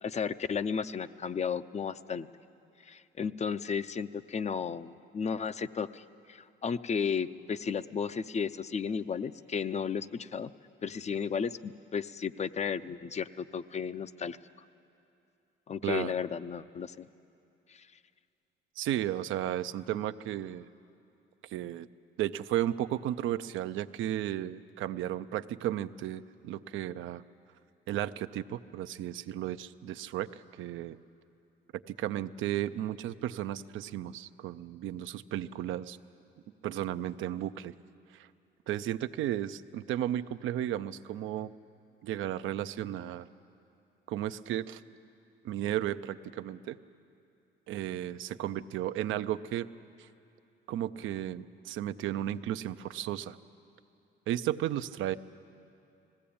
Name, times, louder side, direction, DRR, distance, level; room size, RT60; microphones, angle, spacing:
voice 1, 0.0-2.3 2.8-10.5 10.8-14.4 15.7-17.1 17.7-17.9, left 6 dB, 35° left, 14 dB, 0.5 m, -34 dB
voice 2, 15.8-16.1 18.8-20.7 21.4-21.9 22.2-27.2 27.9-31.0 31.9-36.0 36.6-37.7 38.1-38.3 38.7-41.5 42.0-43.3 44.1-44.8 45.4-46.8 47.7-49.7 50.0-50.1 50.7-53.4 54.3-55.2, right 12 dB, 85° right, 11 dB, 0.5 m, -34 dB
19.5 x 15.5 x 8.6 m, 2.7 s
cardioid pair, 90°, 20 cm